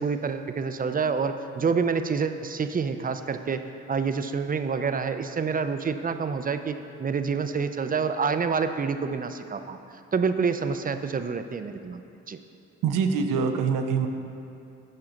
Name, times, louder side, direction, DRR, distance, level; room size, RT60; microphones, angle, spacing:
voice 1, 0.0-3.6 3.9-9.8 10.1-12.4, right 5 dB, 25° right, 9 dB, 0.5 m, -27 dB
voice 2, 12.8-14.1, right 6 dB, 70° right, 6 dB, 0.8 m, -24 dB
11.0 x 5.8 x 3.9 m, 2.6 s
hypercardioid pair, 55°, 33 cm